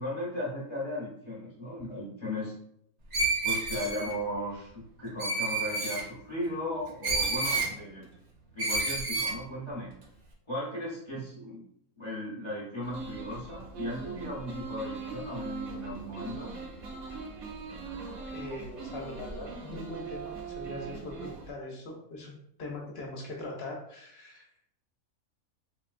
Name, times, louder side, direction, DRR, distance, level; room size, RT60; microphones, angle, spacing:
voice 1, 0.0-2.6 3.4-8.1 8.5-9.9 10.5-11.6 12.0-16.5, left 1 dB, 25° left, -6 dB, 0.7 m, -36 dB
Screech, 3.1-4.1 5.2-6.0 7.0-7.7 8.6-9.4, right 3 dB, 60° right, 0.4 m, -29 dB
sound 1, 12.8-21.5, right 4 dB, 80° right, 1.1 m, -40 dB
voice 2, 18.3-24.5, left 2 dB, 55° left, 0 dB, 0.8 m, -41 dB
3.8 x 2.3 x 2.4 m, 0.71 s
omnidirectional pair, 1.5 m